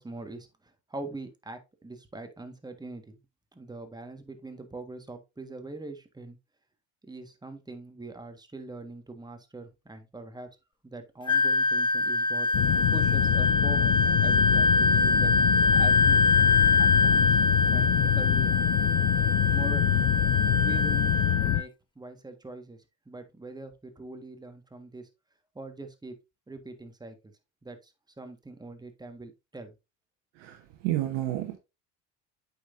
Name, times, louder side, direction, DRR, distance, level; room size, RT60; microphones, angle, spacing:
voice 1, 0.0-3.2 3.5-6.4 7.0-10.5 10.8-12.5 12.9-13.9 14.2-15.3 15.7-16.2 16.8-17.4 17.7-18.7 19.4-20.1 20.6-21.2 21.4-21.7 21.9-25.1 25.5-26.1 26.5-27.3 27.6-27.9 28.2-29.7, right 2 dB, 10° right, 1.5 m, -42 dB
Wind instrument woodwind instrument, 11.3-21.6, left 3 dB, 15° left, 0.7 m, -24 dB
sound 1, 12.5-21.6, left 15 dB, 55° left, 0.6 m, -26 dB
voice 2, 30.4-31.6, right 14 dB, 75° right, 1.2 m, -30 dB
8.3 x 5.7 x 2.6 m
hypercardioid pair, 75°, 36 cm